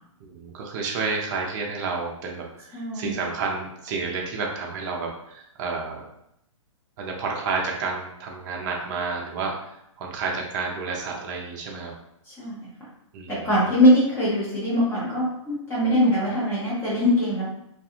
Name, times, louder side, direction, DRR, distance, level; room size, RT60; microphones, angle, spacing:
voice 1, 0.2-6.0 7.0-9.5 10.0-11.9 13.1-13.5, right 4 dB, 35° right, -1 dB, 0.5 m, -30 dB
voice 2, 2.7-3.1 12.4-12.7 13.3-17.4, equal, 15° left, -8 dB, 0.8 m, -22 dB
2.4 x 2.2 x 2.8 m, 0.78 s
hypercardioid pair, 145°, 17 cm